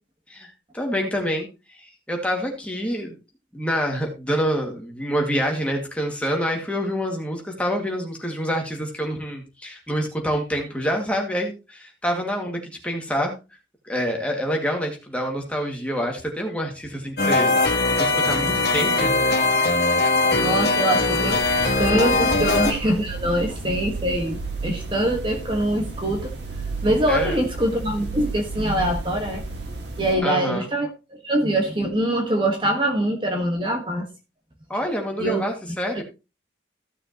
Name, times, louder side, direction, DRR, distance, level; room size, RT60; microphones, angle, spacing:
voice 1, 0.3-3.2 3.5-13.3 13.8-17.5 18.0-19.2 22.3-22.4 27.1-27.4 30.2-30.7 34.7-36.0, equal, 5° left, 2.2 m, -27 dB
sound 1, 17.2-22.7, left 3 dB, 65° left, 1.9 m, -20 dB
voice 2, 20.3-21.4 21.8-26.3 26.8-29.4 30.0-34.1 35.2-35.4, right 1 dB, 30° right, 1.6 m, -23 dB
sound 2, 21.3-30.2, right 3 dB, 80° right, 2.2 m, -33 dB
15.5 x 6.4 x 3.0 m
head